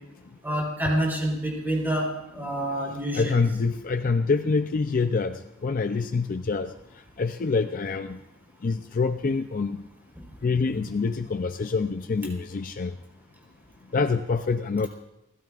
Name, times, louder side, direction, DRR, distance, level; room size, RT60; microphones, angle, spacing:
voice 1, 0.4-2.1 2.3-3.4, right 1 dB, 10° right, -1 dB, 3.9 m, -27 dB
voice 2, 3.1-6.7 7.2-8.2 8.6-9.8 10.4-13.0 13.9-14.9, left 4 dB, 40° left, 9 dB, 0.4 m, -26 dB
29.5 x 15.5 x 2.4 m, 0.93 s
head